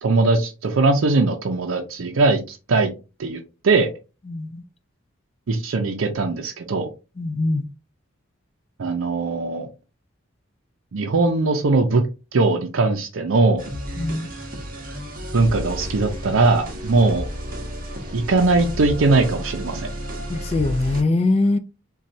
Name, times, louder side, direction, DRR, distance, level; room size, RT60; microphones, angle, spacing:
voice 1, 0.0-2.9 3.2-3.9 5.5-6.9 8.8-9.7 10.9-12.0 12.3-13.7 15.3-17.3 18.1-19.9, right 3 dB, 85° right, 0.5 m, -20 dB
voice 2, 4.3-4.6 7.2-7.7 14.0-14.3 20.3-21.6, left 2 dB, 30° left, 0.3 m, -22 dB
sound 1, 13.6-21.0, equal, 45° right, 0.8 m, -32 dB
4.1 x 2.3 x 2.5 m
head